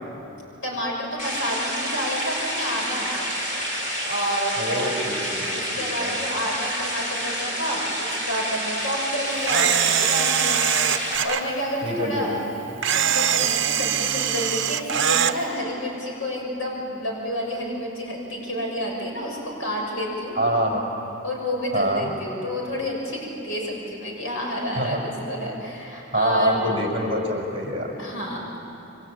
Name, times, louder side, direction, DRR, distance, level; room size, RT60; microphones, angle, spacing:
voice 1, 0.6-3.1 4.0-4.9 5.5-10.6 11.2-12.4 12.9-20.3 21.2-25.0 25.3-26.7 28.0-28.6, equal, 70° left, -1 dB, 6.6 m, -29 dB
sound 1, 1.2-11.2, equal, 40° left, 5.3 m, -29 dB
voice 2, 4.6-6.2 11.8-12.4 20.4-20.9 21.7-22.1 24.8-25.0 26.1-27.9, equal, 30° right, -1 dB, 5.6 m, -25 dB
Camera, 9.5-11.4 12.8-15.4, right 9 dB, 60° right, 1.0 m, -22 dB
28.5 x 24.5 x 8.6 m, 2.9 s
head